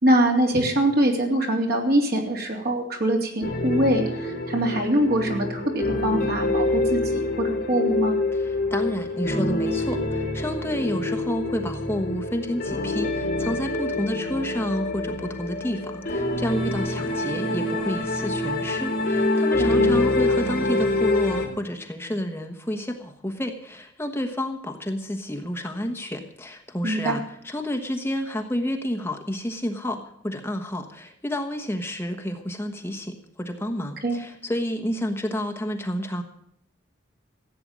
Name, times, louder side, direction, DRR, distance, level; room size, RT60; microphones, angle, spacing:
voice 1, 0.0-8.2 19.8-19.9 26.8-27.2 34.0-34.2, right 1 dB, 55° right, 1 dB, 3.3 m, -23 dB
sound 1, 3.4-21.5, left 2 dB, 45° left, 3.8 m, -26 dB
voice 2, 8.3-36.2, left 1 dB, 10° left, 3 dB, 1.3 m, -30 dB
15.5 x 8.8 x 7.6 m, 0.70 s
head